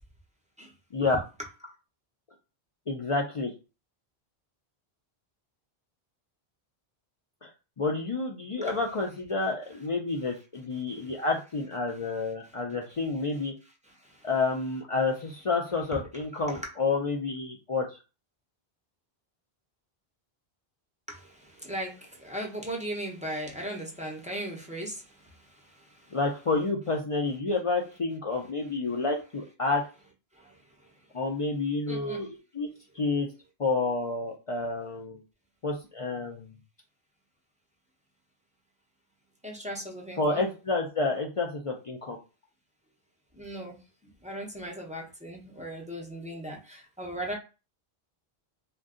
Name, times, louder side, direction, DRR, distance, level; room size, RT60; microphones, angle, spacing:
voice 1, 2.9-3.5 7.4-7.5 7.8-13.5 14.2-18.0 26.1-29.8 31.1-32.7 32.9-33.3 33.6-35.2 35.6-36.5 40.2-42.2, left 3 dB, 50° left, 0.4 m, -29 dB
voice 2, 13.8-14.3 16.3-16.7 21.1-26.2 30.3-30.9 31.9-32.3 39.4-40.5 43.3-47.4, right 1 dB, 10° right, 0.6 m, -38 dB
2.5 x 2.2 x 3.6 m
omnidirectional pair, 1.1 m